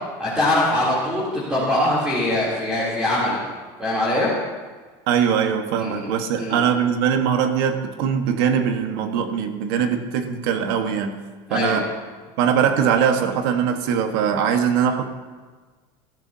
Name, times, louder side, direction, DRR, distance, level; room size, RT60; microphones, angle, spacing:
voice 1, 0.2-3.4 3.8-4.3 5.8-6.1 6.3-6.6 11.5-11.8, left 1 dB, 5° right, -8 dB, 3.2 m, -22 dB
voice 2, 5.1-11.2 11.5-11.9 12.4-15.1, right 7 dB, 75° right, 6 dB, 1.4 m, -21 dB
19.0 x 13.5 x 2.8 m, 1.4 s
cardioid pair, 150°, 12 cm